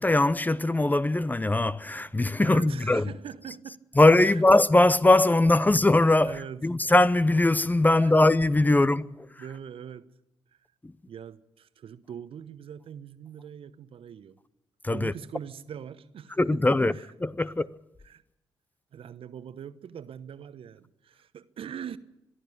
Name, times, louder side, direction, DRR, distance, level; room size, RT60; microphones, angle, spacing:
voice 1, 0.0-3.1 4.0-9.3 10.8-10.9 14.8-15.1 16.4-16.9 17.2-17.7, left 2 dB, 15° left, 0.7 m, -21 dB
voice 2, 2.4-3.8 4.2-4.4 6.2-6.6 8.0-8.1 8.7-10.1 11.1-14.4 14.9-17.1 18.0-18.2 18.9-22.0, right 8 dB, 55° right, 1.0 m, -42 dB
22.5 x 12.0 x 9.9 m
hypercardioid pair, 40°, 11 cm